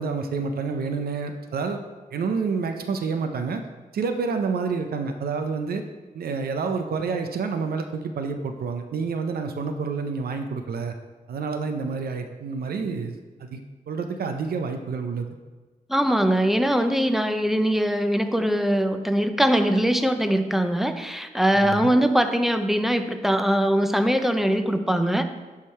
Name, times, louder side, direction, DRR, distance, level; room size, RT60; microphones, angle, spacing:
voice 1, 0.0-1.8 2.1-3.6 3.9-5.8 6.1-10.9 11.3-13.1 13.4-13.6 13.9-15.3 21.5-21.8, right 5 dB, 85° right, 6 dB, 0.6 m, -28 dB
voice 2, 15.9-25.2, equal, ahead, 7 dB, 0.5 m, -22 dB
11.0 x 3.7 x 4.3 m, 1.3 s
wide cardioid pair, 125°, 15 cm